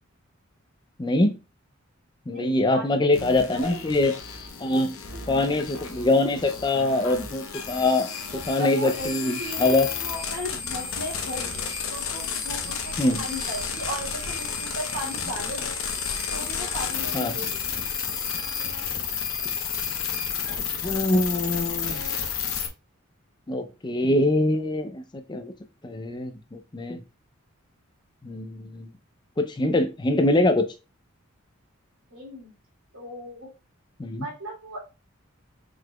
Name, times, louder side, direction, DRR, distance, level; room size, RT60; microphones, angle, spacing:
voice 1, 1.0-1.3 2.3-4.1 4.6-4.9 5.3-9.9 13.0-13.2 17.1-17.4 20.6-22.0 23.5-25.5 25.8-27.0 28.2-28.9 29.4-30.6 34.0-34.3, left 2 dB, 20° left, 8 dB, 0.4 m, -24 dB
voice 2, 2.3-3.1 3.5-3.9 5.1-5.2 8.3-11.6 11.9-15.7 16.3-17.7 32.1-32.5 32.9-33.5 34.2-34.8, equal, 85° right, -2 dB, 2.1 m, -36 dB
sound 1, 3.1-22.7, left 6 dB, 80° left, 0.8 m, -31 dB
4.7 x 3.9 x 2.2 m, 0.29 s
head